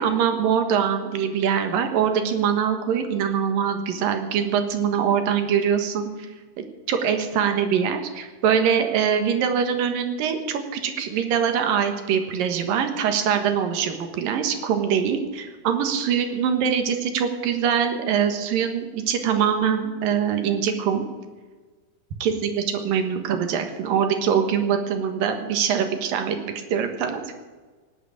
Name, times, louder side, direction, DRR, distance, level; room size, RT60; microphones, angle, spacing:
voice 1, 0.0-6.3 6.6-21.1 22.2-27.2, right 7 dB, 85° right, 7 dB, 3.2 m, -23 dB
18.5 x 8.1 x 8.8 m, 1.4 s
omnidirectional pair, 3.8 m